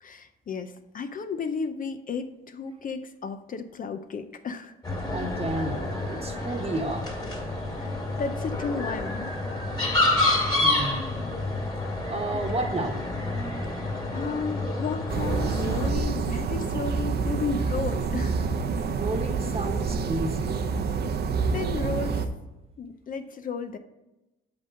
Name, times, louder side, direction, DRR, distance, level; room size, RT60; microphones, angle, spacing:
voice 1, 0.0-4.7 7.8-9.4 12.3-12.4 13.6-18.5 21.5-22.3 22.8-23.8, left 5 dB, 45° left, 9 dB, 0.5 m, -33 dB
sound 1, 4.8-15.9, left 2 dB, 20° left, 2.2 m, -28 dB
voice 2, 5.1-5.8 6.1-7.1 10.6-11.3 12.1-13.0 18.9-20.6, right 2 dB, 30° right, 5 dB, 1.1 m, -31 dB
sound 2, 15.1-22.3, right 5 dB, 55° right, 0.6 m, -27 dB
7.9 x 3.7 x 6.4 m, 0.99 s
cardioid pair, 90°, 20 cm